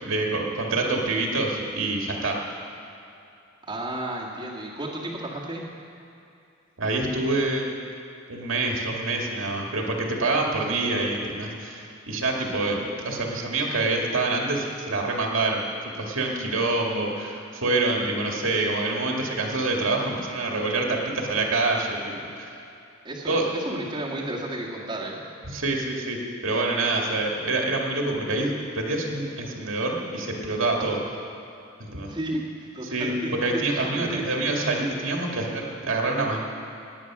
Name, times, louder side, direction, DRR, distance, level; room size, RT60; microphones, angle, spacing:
voice 1, 0.0-2.4 6.8-7.7 8.3-22.6 23.3-23.4 25.5-31.0 31.8-32.1 32.8-33.1 33.4-36.4, right 2 dB, 75° right, 0 dB, 2.0 m, -26 dB
voice 2, 3.7-5.7 23.0-25.2 32.1-34.5, right 1 dB, 20° right, -5 dB, 1.9 m, -33 dB
18.5 x 9.0 x 6.1 m, 2.6 s
head